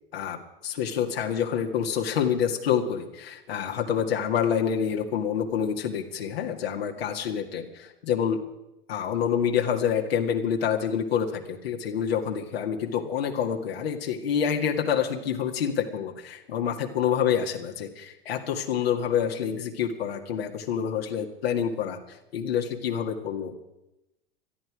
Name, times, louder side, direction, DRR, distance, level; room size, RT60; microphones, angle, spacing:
voice 1, 0.6-8.4 8.9-23.5, left 8 dB, 85° left, 1 dB, 2.1 m, -27 dB
21.0 x 13.0 x 4.9 m, 0.92 s
hypercardioid pair, 100°, 30 cm